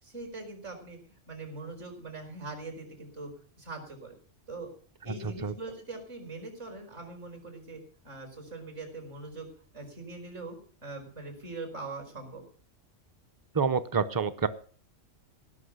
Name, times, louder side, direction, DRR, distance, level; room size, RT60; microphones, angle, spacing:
voice 1, 0.0-3.3 3.6-4.2 4.5-4.7 5.0-9.5 9.7-10.6 10.8-12.4, right 3 dB, 65° right, 4 dB, 5.0 m, -42 dB
voice 2, 13.5-14.5, right 6 dB, 20° right, 11 dB, 0.6 m, -27 dB
17.0 x 6.1 x 8.0 m, 0.44 s
omnidirectional pair, 1.3 m